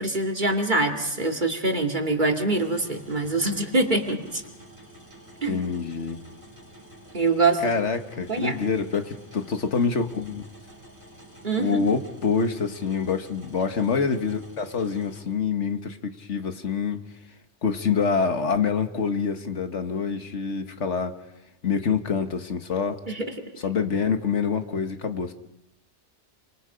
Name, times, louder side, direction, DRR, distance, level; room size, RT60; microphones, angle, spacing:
voice 1, 0.0-4.4 5.4-5.6 7.1-7.7 8.3-8.6 11.4-11.8 23.1-23.3, right 2 dB, 45° right, 2 dB, 2.6 m, -24 dB
sound 1, 2.5-15.2, right 1 dB, 20° right, 5.9 m, -49 dB
voice 2, 5.5-6.2 7.6-10.4 11.6-17.0 17.6-21.2 21.6-23.0 23.6-25.3, left 5 dB, 90° left, 7 dB, 1.8 m, -26 dB
28.0 x 26.0 x 5.1 m, 0.89 s
omnidirectional pair, 1.2 m